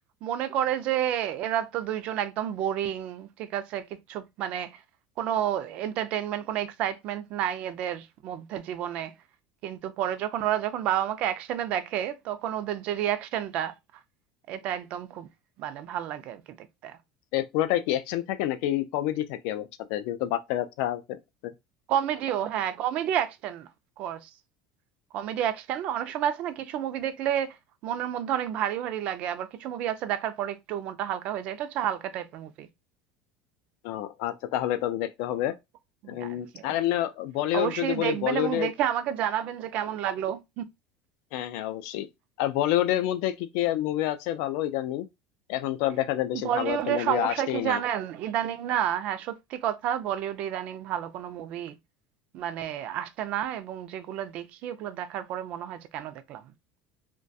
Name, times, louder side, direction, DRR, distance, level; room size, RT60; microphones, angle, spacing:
voice 1, 0.2-4.8 5.2-9.1 9.6-13.7 14.5-15.3 15.6-17.0 21.9-23.7 24.0-24.3 25.1-27.6 27.8-32.7 36.0-36.7 37.5-40.7 46.4-51.8 52.3-56.4, right 10 dB, 55° right, 0.3 m, -30 dB
voice 2, 17.3-21.2 33.8-35.5 36.1-38.7 41.3-42.1 42.4-45.1 45.5-47.8, left 13 dB, 70° left, 0.3 m, -28 dB
2.3 x 2.2 x 2.6 m
supercardioid pair, 125°, 3 cm